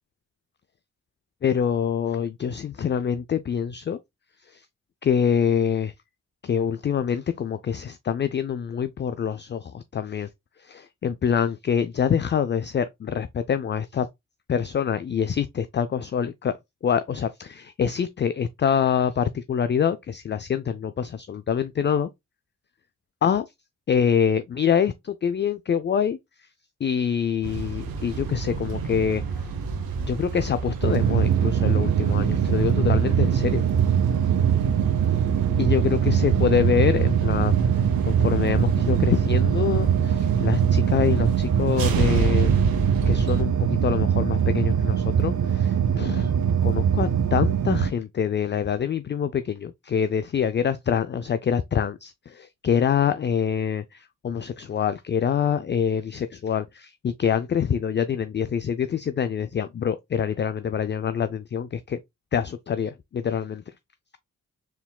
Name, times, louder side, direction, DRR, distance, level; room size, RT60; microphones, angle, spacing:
voice 1, 1.4-4.0 4.5-4.6 5.0-5.9 6.4-10.3 10.6-14.1 14.5-16.5 16.8-22.1 23.2-23.5 23.9-26.2 26.8-29.2 30.0-33.6 35.6-37.5 38.0-42.5 43.1-46.3 46.6-62.0 62.3-63.6, left 7 dB, 35° left, 0.4 m, -25 dB
sound 1, 27.4-43.4, right 4 dB, 85° right, 0.9 m, -30 dB
sound 2, 30.8-47.9, right 8 dB, 60° right, 0.6 m, -22 dB
4.5 x 3.6 x 2.2 m
supercardioid pair, 50°, 34 cm